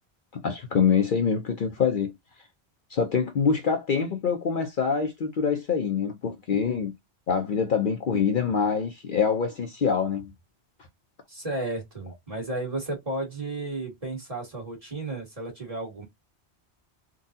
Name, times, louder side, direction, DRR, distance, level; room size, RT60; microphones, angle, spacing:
voice 1, 0.3-2.1 2.9-6.9 7.3-10.3, left 6 dB, 55° left, 0.7 m, -25 dB
voice 2, 11.3-16.0, right 2 dB, 30° right, 1.8 m, -33 dB
3.8 x 2.3 x 2.6 m
omnidirectional pair, 1.1 m